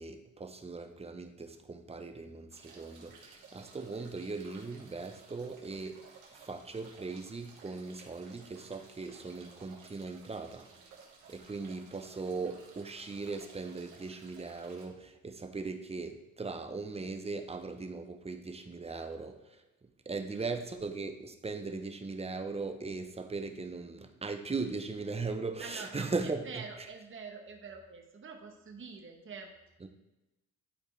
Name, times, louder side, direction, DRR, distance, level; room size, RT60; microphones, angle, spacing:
voice 1, 0.0-6.0 6.3-10.7 11.3-26.9 29.8-29.9, right 4 dB, 20° right, 7 dB, 0.8 m, -39 dB
sound 1, 2.5-14.9, right 5 dB, 80° right, 1.7 m, -56 dB
voice 2, 25.6-29.5, right 5 dB, 40° right, 2 dB, 1.3 m, -46 dB
11.5 x 4.3 x 3.4 m, 0.99 s
cardioid pair, 90°, 30 cm